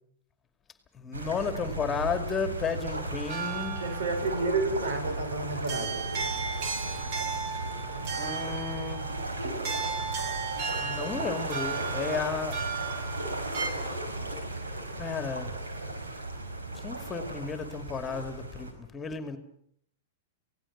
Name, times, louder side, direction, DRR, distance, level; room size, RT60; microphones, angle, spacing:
voice 1, 0.9-3.8 8.2-9.0 10.8-12.6 15.0-15.6 16.8-19.4, left 6 dB, 20° left, 2.4 m, -33 dB
sound 1, 1.1-18.7, right 2 dB, 90° right, 5.0 m, -36 dB
sound 2, 3.3-13.7, right 5 dB, 50° right, 3.1 m, -36 dB
voice 2, 3.8-6.1, right 3 dB, 75° right, 5.4 m, -30 dB
27.5 x 17.5 x 7.3 m
hypercardioid pair, 110°, 0 cm